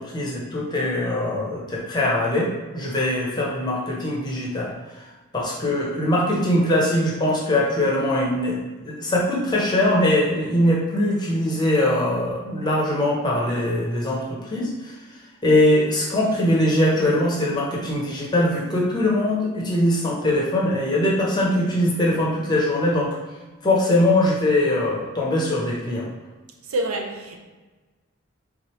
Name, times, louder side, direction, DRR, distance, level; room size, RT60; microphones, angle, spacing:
voice 1, 0.1-4.7 5.3-14.9 15.4-23.1 23.6-26.0, left 1 dB, 20° left, 0.7 m, -22 dB
voice 2, 26.7-27.4, right 1 dB, 70° right, 0.5 m, -26 dB
3.7 x 3.2 x 3.0 m
head